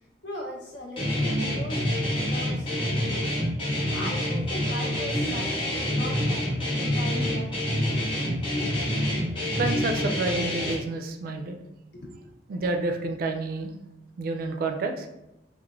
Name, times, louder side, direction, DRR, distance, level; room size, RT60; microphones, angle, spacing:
voice 1, 0.2-3.3 3.9-7.6 11.9-12.2, left 1 dB, 75° left, -1 dB, 0.7 m, -39 dB
Guitar, 1.0-10.7, equal, 30° left, 0.7 m, -27 dB
voice 2, 9.6-11.6 12.5-13.7 14.2-15.1, right 3 dB, 55° right, 5 dB, 0.3 m, -29 dB
3.0 x 2.1 x 2.4 m, 0.86 s
head